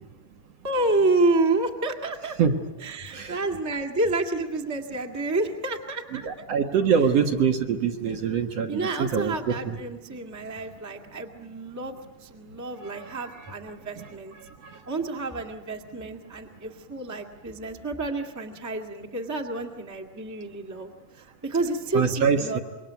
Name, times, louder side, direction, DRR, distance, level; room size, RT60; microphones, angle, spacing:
voice 1, 0.6-2.4 2.8-6.3 8.7-14.3 14.9-22.6, right 2 dB, 5° right, 2 dB, 1.4 m, -29 dB
voice 2, 6.2-9.8 12.8-13.2 14.6-14.8 21.9-22.6, right 6 dB, 60° right, 4 dB, 2.3 m, -24 dB
27.0 x 23.0 x 9.4 m, 1.2 s
omnidirectional pair, 3.6 m